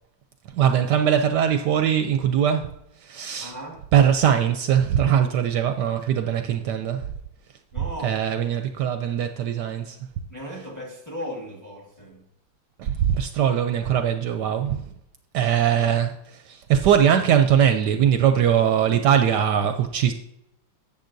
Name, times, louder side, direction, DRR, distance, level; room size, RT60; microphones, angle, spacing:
voice 1, 0.5-3.5 3.9-7.1 8.0-10.0 12.8-14.8 15.3-20.1, right 9 dB, 75° right, 1.1 m, -21 dB
voice 2, 3.4-3.9 7.7-8.2 10.3-12.3, equal, 10° left, 1.1 m, -36 dB
10.5 x 7.6 x 2.6 m
omnidirectional pair, 2.1 m